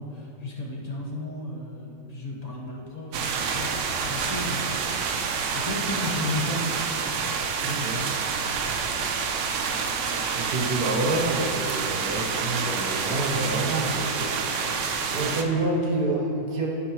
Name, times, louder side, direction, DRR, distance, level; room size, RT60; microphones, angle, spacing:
voice 1, 0.0-4.9 5.2-6.8, left 2 dB, 25° left, -5 dB, 1.2 m, -34 dB
sound 1, 3.1-15.4, right 5 dB, 85° right, 0.6 m, -28 dB
voice 2, 7.6-8.0 10.3-14.4 15.1-16.7, right 2 dB, 60° right, -2 dB, 1.7 m, -27 dB
12.5 x 6.7 x 3.1 m, 2.9 s
omnidirectional pair, 1.9 m